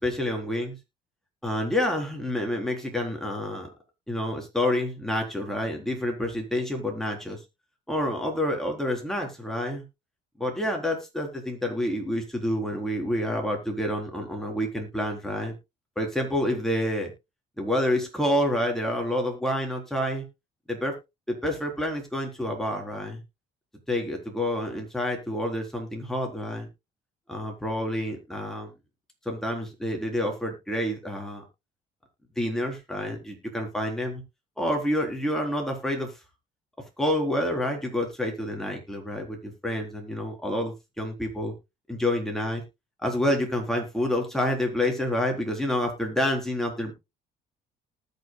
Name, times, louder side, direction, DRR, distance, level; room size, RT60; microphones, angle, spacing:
voice 1, 0.0-0.8 1.4-3.7 4.1-7.4 7.9-9.8 10.4-15.5 16.0-17.1 17.6-20.2 20.7-20.9 21.3-23.2 23.9-26.7 27.3-28.7 29.3-31.4 32.4-34.2 34.6-36.1 37.0-41.5 41.9-42.6 43.0-46.9, left 1 dB, 5° left, 1 dB, 4.0 m, -28 dB
19.0 x 6.9 x 2.3 m, 0.23 s
cardioid pair, 110°, 17 cm